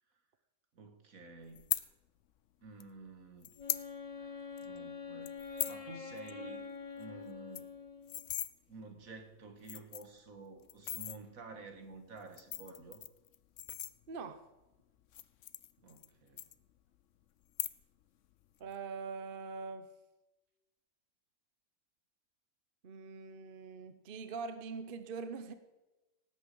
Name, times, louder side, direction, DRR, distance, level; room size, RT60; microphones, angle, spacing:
voice 1, 0.8-1.7 2.6-3.5 4.2-6.7 7.0-7.7 8.7-13.0 15.8-16.5, right 3 dB, 70° right, 6 dB, 2.0 m, -51 dB
sound 1, 1.5-1.8 2.8-2.9 3.4-3.9 4.2-4.3 4.6-4.8 5.3-5.8 6.2-6.3 6.6-6.7 7.0-7.1 7.4-8.5 9.2-9.3 9.6-10.2 10.7-11.2 12.2-14.4 15.0-16.1 16.4-17.0 17.4-18.0 18.3-18.7, left 12 dB, 65° left, 0.9 m, -39 dB
Wind instrument woodwind instrument, 3.6-8.4, left 5 dB, 30° left, 1.0 m, -46 dB
voice 2, 14.1-14.4 18.6-19.9 22.8-25.5, right 5 dB, 45° right, 10 dB, 0.9 m, -43 dB
18.5 x 8.3 x 5.4 m, 1.1 s
omnidirectional pair, 1.5 m